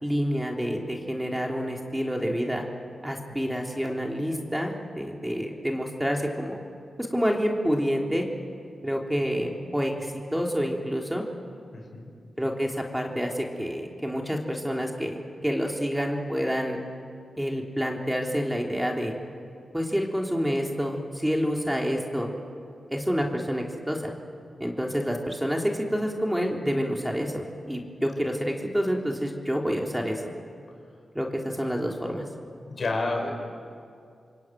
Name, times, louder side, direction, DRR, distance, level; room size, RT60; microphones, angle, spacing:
voice 1, 0.0-2.6 3.0-6.6 7.1-8.3 8.8-11.2 12.4-16.8 17.4-19.1 19.7-22.3 22.9-24.1 24.6-30.2 31.1-32.2, equal, 5° right, 0 dB, 3.5 m, -28 dB
voice 2, 11.7-12.1 32.7-33.3, left 2 dB, 60° left, 2 dB, 5.7 m, -30 dB
27.0 x 23.0 x 9.2 m, 2.3 s
cardioid pair, 55°, 0 cm